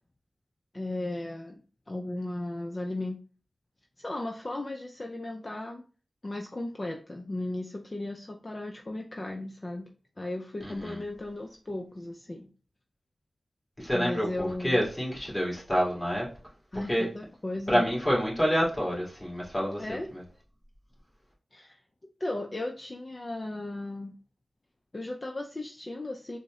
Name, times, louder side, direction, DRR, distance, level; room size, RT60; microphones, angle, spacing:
voice 1, 0.7-1.6 1.9-3.2 4.0-5.8 6.2-9.8 10.2-12.5 13.9-14.8 16.7-17.9 19.8-20.1 21.5-21.8 22.2-24.1 24.9-26.4, left 2 dB, 35° left, 0.4 m, -36 dB
voice 2, 10.6-11.0 13.8-16.3 16.9-17.1 17.7-19.8 20.1-20.2, equal, 15° left, 1.9 m, -27 dB
4.0 x 2.1 x 3.6 m
wide cardioid pair, 60°, 0 cm